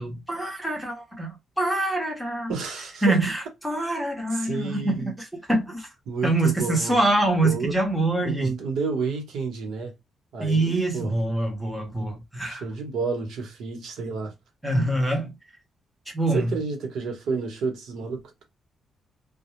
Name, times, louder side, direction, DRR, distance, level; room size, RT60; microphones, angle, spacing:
voice 1, 0.0-2.5 3.0-5.9 6.2-8.5 10.4-12.6 14.6-15.3 16.1-16.5, right 2 dB, 5° right, 0.7 m, -25 dB
voice 2, 2.5-3.2 4.3-5.1 6.1-7.0 7.4-7.7 8.2-9.9 10.3-11.1 12.5-14.3 16.3-18.4, right 4 dB, 80° right, 1.0 m, -30 dB
2.2 x 2.1 x 3.0 m
cardioid pair, 175°, 0 cm